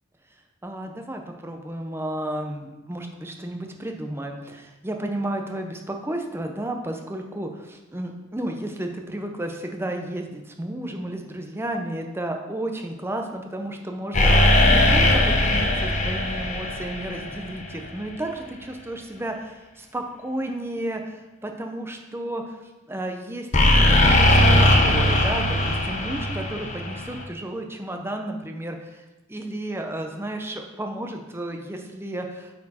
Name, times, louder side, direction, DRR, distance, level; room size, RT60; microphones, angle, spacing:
voice 1, 0.6-22.6 22.9-28.9 29.3-32.5, right 1 dB, 10° right, 4 dB, 0.7 m, -32 dB
sound 1, 14.1-17.8 23.5-27.2, left 1 dB, 35° left, 0.8 m, -19 dB
8.7 x 4.4 x 4.3 m, 1.1 s
head